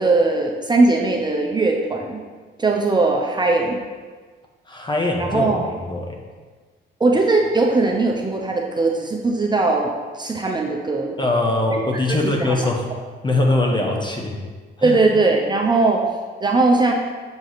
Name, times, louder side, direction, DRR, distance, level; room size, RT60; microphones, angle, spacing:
voice 1, 0.0-2.2 2.6-3.8 5.2-5.7 7.0-11.2 11.7-11.8 12.1-12.7 14.8-16.0 16.4-16.9, right 3 dB, 20° right, 0 dB, 0.8 m, -19 dB
voice 2, 4.7-5.5 5.8-6.2 11.2-12.9 13.2-14.4 14.8-15.0, left 2 dB, 25° left, 1 dB, 1.2 m, -21 dB
7.4 x 4.9 x 4.1 m, 1.5 s
cardioid pair, 90°, 20 cm